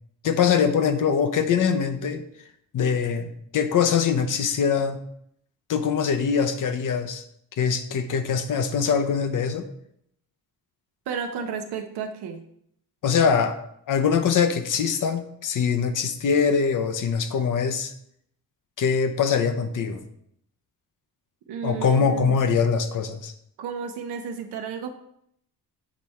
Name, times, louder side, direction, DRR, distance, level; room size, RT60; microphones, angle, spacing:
voice 1, 0.2-2.2 2.7-5.0 5.7-7.2 7.6-9.7 13.0-17.9 18.8-20.0 21.6-23.3, left 6 dB, 55° left, 8 dB, 0.7 m, -23 dB
voice 2, 11.1-12.4 21.5-22.4 23.6-24.9, right 6 dB, 90° right, 4 dB, 0.8 m, -32 dB
8.2 x 3.5 x 4.2 m, 0.71 s
cardioid pair, 115°, 39 cm